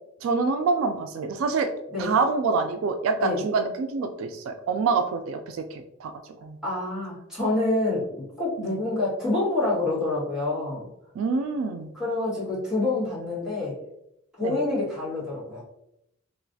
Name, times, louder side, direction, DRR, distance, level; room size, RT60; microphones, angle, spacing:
voice 1, 0.2-1.7 2.0-6.1 6.4-6.6 8.6-8.8 11.2-11.9 14.4-14.6, right 4 dB, 80° right, 7 dB, 0.3 m, -26 dB
voice 2, 6.6-10.8 11.9-13.7 14.4-15.6, left 2 dB, 5° right, -10 dB, 1.4 m, -27 dB
3.1 x 2.4 x 2.6 m, 0.82 s
head